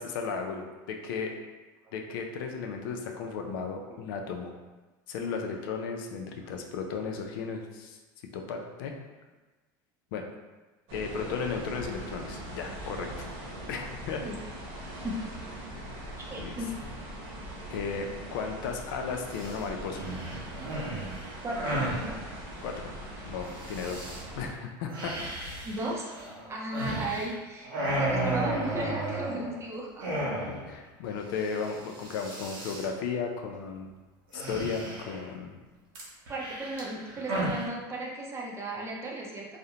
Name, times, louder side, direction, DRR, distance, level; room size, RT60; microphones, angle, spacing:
voice 1, 0.0-1.3 1.9-4.5 5.1-8.0 8.3-8.9 10.1-10.3 10.9-13.2 13.7-14.2 16.4-16.5 17.7-20.0 22.6-22.9 23.3-24.0 24.4-25.1 30.5-33.9 34.3-35.6, left 5 dB, 75° left, 3 dB, 0.4 m, -35 dB
sound 1, 10.9-24.5, right 1 dB, 60° right, 0.9 m, -41 dB
voice 2, 16.2-16.7 21.4-21.8 22.0-22.2 25.6-26.1 26.5-30.0 36.3-39.5, right 2 dB, 25° right, -2 dB, 0.5 m, -35 dB
sound 2, 19.3-19.6 19.9-22.1 23.6-24.2 24.9-27.4 27.6-29.6 30.0-30.7 31.0-31.1 31.4-31.7 31.9-32.9 34.3-35.3 35.9-37.7, right 1 dB, 85° right, 0.7 m, -34 dB
2.4 x 2.0 x 2.8 m, 1.2 s
supercardioid pair, 110°, 12 cm